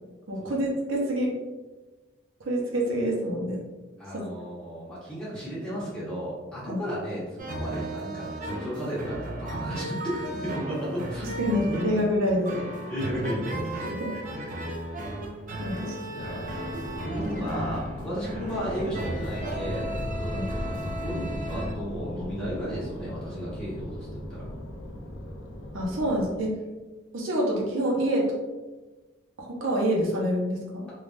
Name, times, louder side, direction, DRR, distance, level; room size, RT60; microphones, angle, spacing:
voice 1, 0.3-1.3 2.4-3.6 4.1-4.2 6.7-6.8 11.4-12.5 13.8-14.1 15.6-16.0 20.3-20.4 25.7-26.6 27.1-28.3 29.4-30.9, equal, 80° right, -2 dB, 0.7 m, -27 dB
voice 2, 4.0-11.3 11.7-12.0 12.6-14.8 15.8-24.5, equal, 5° left, -10 dB, 1.1 m, -34 dB
sound 1, 7.4-21.7, right 1 dB, 40° right, 0.4 m, -35 dB
sound 2, 16.2-26.4, left 1 dB, 70° left, 0.5 m, -37 dB
3.3 x 2.3 x 2.5 m, 1.2 s
head